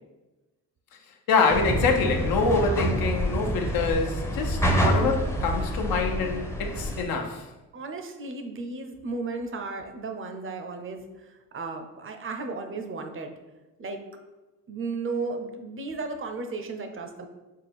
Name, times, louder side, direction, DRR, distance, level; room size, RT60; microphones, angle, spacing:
voice 1, 1.3-7.5, left 4 dB, 75° left, 0.6 m, -25 dB
sound 1, 1.5-7.0, right 1 dB, 10° left, 0.6 m, -27 dB
voice 2, 7.7-13.3 13.8-14.0 14.7-17.3, right 3 dB, 35° right, 0.5 m, -34 dB
4.3 x 2.2 x 3.4 m
supercardioid pair, 70°, 36 cm